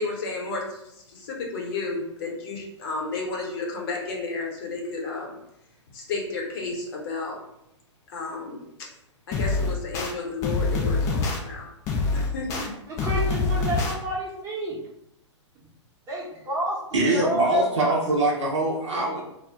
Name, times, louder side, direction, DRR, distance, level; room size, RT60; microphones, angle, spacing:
voice 1, 0.0-5.4 5.9-7.4 8.1-8.9 9.3-11.7 12.1-12.7, left 3 dB, 50° left, -1 dB, 0.9 m, -32 dB
sound 1, 9.3-10.1 10.4-11.4 11.9-12.7 13.0-13.9, left 3 dB, 20° left, 0.4 m, -25 dB
voice 2, 12.9-14.8 16.1-18.0 19.2-19.3, right 1 dB, 20° right, -4 dB, 0.8 m, -29 dB
voice 3, 16.9-19.2, right 2 dB, 70° right, -3 dB, 0.6 m, -23 dB
2.1 x 2.1 x 3.6 m, 0.81 s
figure-of-eight pair, 115°, 16 cm